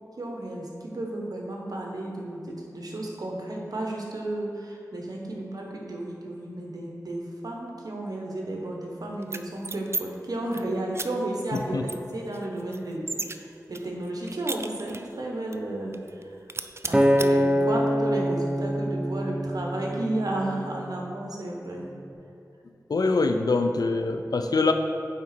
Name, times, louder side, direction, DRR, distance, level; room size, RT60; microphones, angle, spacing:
voice 1, 0.2-16.4 16.9-21.9, right 1 dB, 75° right, -1 dB, 1.2 m, -33 dB
sound 1, 9.2-10.0 10.3-10.6 10.9-11.1 11.5-11.6 11.9-13.4 13.7-15.2 15.5-15.6 15.9-16.2 16.5-17.3, right 3 dB, 40° right, 0.4 m, -34 dB
Acoustic guitar, 16.9-21.3 21.9-22.1, equal, 15° right, 0.7 m, -25 dB
voice 2, 22.9-24.7, left 3 dB, 75° left, 6 dB, 0.5 m, -23 dB
9.1 x 4.1 x 4.5 m, 2.7 s
cardioid pair, 45°, 7 cm